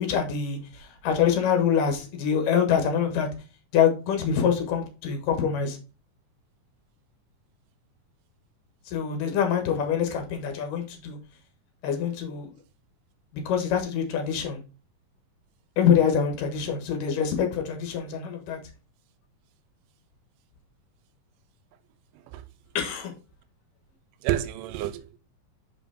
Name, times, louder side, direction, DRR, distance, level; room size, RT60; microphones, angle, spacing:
voice 1, 0.0-3.3 3.7-5.8 8.9-11.2 11.8-12.5 13.3-14.6 15.8-18.6 22.7-23.1, left 7 dB, 80° left, 2.9 m, -25 dB
voice 2, 24.2-25.2, right 13 dB, 90° right, 2.2 m, -30 dB
5.6 x 5.1 x 3.4 m
omnidirectional pair, 3.8 m